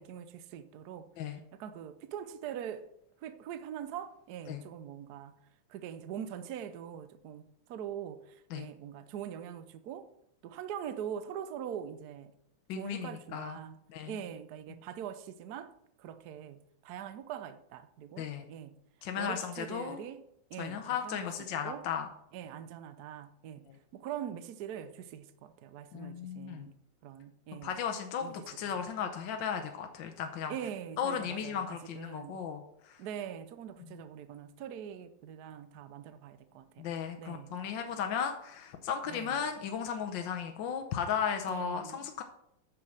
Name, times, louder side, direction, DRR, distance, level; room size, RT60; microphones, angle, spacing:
voice 1, 0.0-1.1 1.5-2.9 3.2-5.4 5.7-10.1 10.4-12.3 12.7-18.8 19.2-20.2 20.5-21.9 22.3-26.7 27.0-27.7 28.2-28.3 30.5-32.4 33.0-36.9 37.2-37.6 39.1-39.4 41.5-42.1, right 9 dB, 65° right, 1.0 m, -43 dB
voice 2, 12.7-13.6 13.9-14.2 18.2-18.4 19.0-20.0 20.6-22.1 23.7-23.8 25.9-26.7 27.6-30.5 31.0-33.0 33.8-34.0 36.8-42.2, left 7 dB, 70° left, 1.4 m, -35 dB
9.2 x 6.4 x 6.3 m
omnidirectional pair, 2.2 m